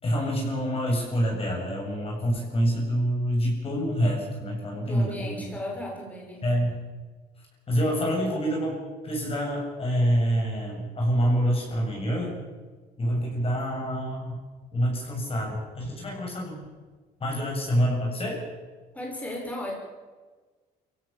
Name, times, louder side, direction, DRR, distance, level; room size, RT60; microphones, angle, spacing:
voice 1, 0.0-5.5 6.4-6.8 7.7-12.4 13.0-14.4 14.7-16.6 17.2-18.4, equal, 35° left, -1 dB, 7.7 m, -26 dB
voice 2, 4.8-6.4 18.9-19.7, left 1 dB, 10° left, -1 dB, 6.4 m, -35 dB
25.5 x 17.0 x 7.5 m, 1.4 s
cardioid pair, 110°, 17 cm